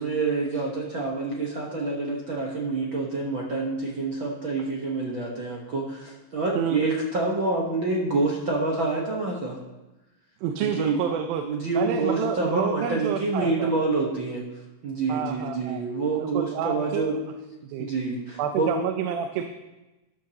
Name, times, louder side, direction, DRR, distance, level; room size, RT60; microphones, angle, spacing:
voice 1, 0.0-9.6 10.6-11.0 11.4-14.4 14.8-17.2 17.8-18.8, right 3 dB, 60° right, -3 dB, 1.3 m, -27 dB
voice 2, 10.4-11.4 11.7-13.7 15.1-15.9 16.2-17.2 17.6-17.9 18.4-19.4, right 8 dB, 90° right, 5 dB, 2.5 m, -28 dB
13.5 x 12.0 x 2.9 m, 1.0 s
omnidirectional pair, 4.1 m